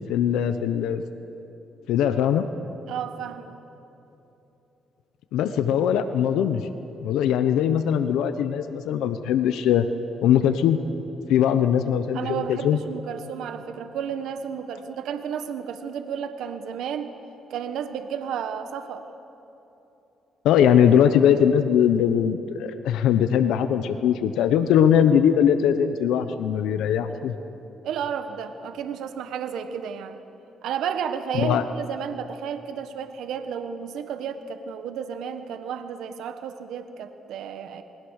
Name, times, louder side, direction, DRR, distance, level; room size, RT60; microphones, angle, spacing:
voice 1, 0.1-1.0 1.9-2.5 5.3-6.7 7.0-9.9 10.2-10.8 11.3-12.8 20.4-27.3 31.4-31.6, left 9 dB, 90° left, 9 dB, 1.0 m, -21 dB
voice 2, 2.9-3.5 12.1-17.1 17.5-19.1 27.8-30.2 30.6-37.8, right 7 dB, 80° right, 8 dB, 1.4 m, -32 dB
28.0 x 20.5 x 6.6 m, 3.0 s
cardioid pair, 90°, 0 cm